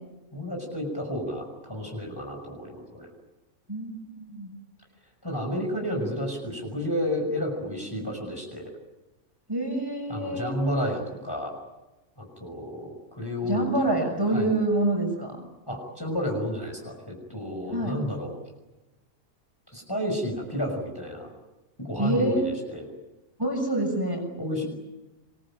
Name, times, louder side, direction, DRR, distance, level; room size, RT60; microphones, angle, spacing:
voice 1, 0.3-3.1 5.2-8.7 10.1-11.5 12.2-14.0 14.3-14.5 15.7-18.4 19.7-21.3 21.8-22.9 24.4-24.7, equal, 15° left, 1 dB, 6.1 m, -31 dB
voice 2, 3.7-4.5 9.5-10.5 13.4-15.4 17.7-18.0 22.0-22.5 23.4-24.2, right 1 dB, 15° right, 2 dB, 6.7 m, -26 dB
27.0 x 22.0 x 8.9 m, 1.0 s
omnidirectional pair, 1.5 m